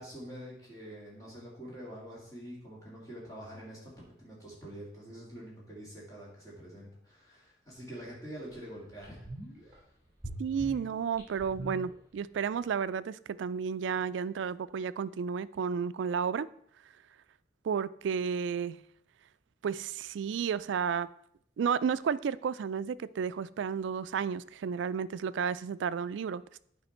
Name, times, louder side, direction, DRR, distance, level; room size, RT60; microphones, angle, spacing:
voice 1, 0.0-9.3 9.6-9.8, equal, 20° left, -5 dB, 2.7 m, -46 dB
sound 1, 7.9-8.0 8.5-8.6 9.0-9.8 10.2-12.4 12.7-12.8, right 1 dB, 15° right, 3.5 m, -43 dB
voice 2, 10.4-16.5 17.6-18.8 19.6-21.1 21.6-26.4, right 6 dB, 80° right, 16 dB, 0.3 m, -32 dB
8.9 x 5.1 x 4.3 m, 0.68 s
head